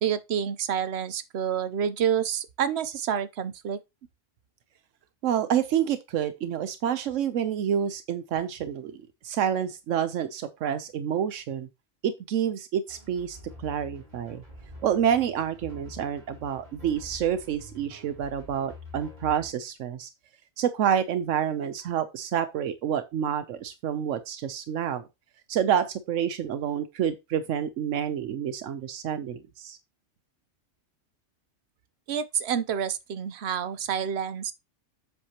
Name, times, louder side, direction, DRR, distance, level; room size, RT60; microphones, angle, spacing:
voice 1, 0.0-3.8 32.1-34.5, right 8 dB, 65° right, 0.9 m, -28 dB
voice 2, 5.2-8.9 9.2-11.7 12.0-14.4 14.8-20.1 20.6-25.0 25.5-29.8, right 9 dB, 85° right, 1.1 m, -28 dB
sound 1, 12.9-19.5, left 1 dB, 35° right, 2.9 m, -46 dB
8.0 x 6.2 x 2.9 m
omnidirectional pair, 1.3 m